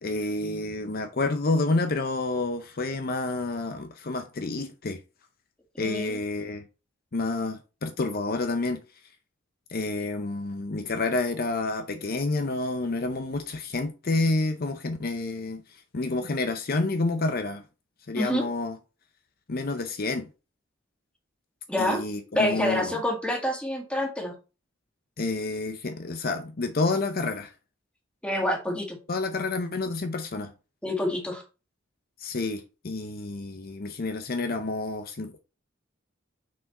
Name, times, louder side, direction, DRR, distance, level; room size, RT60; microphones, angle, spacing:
voice 1, 0.0-5.0 5.8-6.6 7.1-8.8 9.7-17.6 18.1-18.8 19.5-20.3 21.8-23.0 25.2-27.5 29.1-30.5 32.2-35.4, left 3 dB, 50° left, 0.6 m, -29 dB
voice 2, 5.8-6.2 18.2-18.4 21.7-22.0 22.3-24.3 28.2-29.0 30.8-31.4, left 1 dB, 5° left, 1.9 m, -27 dB
6.1 x 4.8 x 4.1 m
head